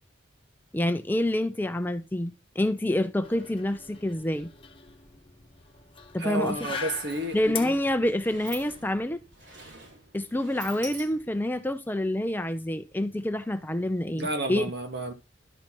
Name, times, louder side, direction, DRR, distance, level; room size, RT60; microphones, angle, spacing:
voice 1, 0.7-4.5 6.1-6.6 7.3-9.2 10.1-14.7, left 1 dB, 10° left, 0.5 m, -27 dB
sound 1, 3.2-10.1, left 5 dB, 30° left, 1.3 m, -42 dB
voice 2, 6.2-7.4 14.1-15.1, right 1 dB, 60° right, 1.9 m, -30 dB
Sliding door, 6.8-11.5, right 2 dB, 75° right, 5.4 m, -46 dB
12.0 x 4.4 x 5.9 m
head